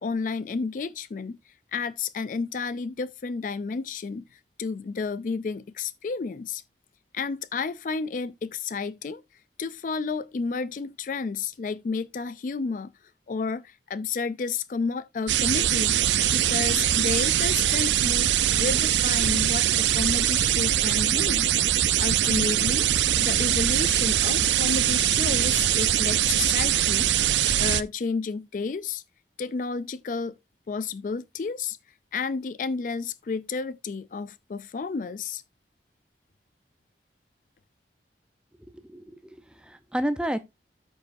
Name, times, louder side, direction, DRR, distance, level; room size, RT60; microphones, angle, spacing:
voice 1, 0.0-6.6 7.1-9.2 9.6-12.9 13.3-16.0 16.3-18.3 18.6-21.5 22.0-22.9 23.2-29.0 29.4-30.4 30.7-31.8 32.1-35.4, left 4 dB, 45° left, 0.3 m, -31 dB
sound 1, 15.3-27.8, right 11 dB, 90° right, 0.5 m, -22 dB
voice 2, 38.6-40.4, equal, 5° right, 0.7 m, -31 dB
13.5 x 5.2 x 2.6 m
head